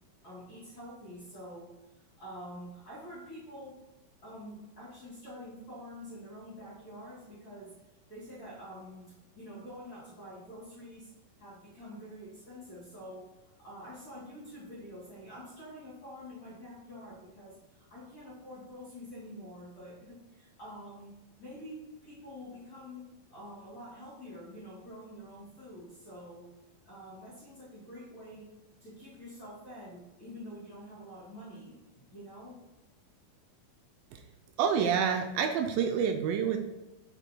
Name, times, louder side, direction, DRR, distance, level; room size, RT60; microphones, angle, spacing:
voice 1, 0.2-1.7 2.2-3.8 4.2-7.8 8.1-11.1 11.4-26.5 26.8-28.5 28.8-32.6, equal, 35° left, -8 dB, 2.6 m, -47 dB
voice 2, 34.6-36.6, right 7 dB, 80° right, 5 dB, 2.2 m, -28 dB
7.2 x 6.6 x 2.2 m, 1.0 s
omnidirectional pair, 4.3 m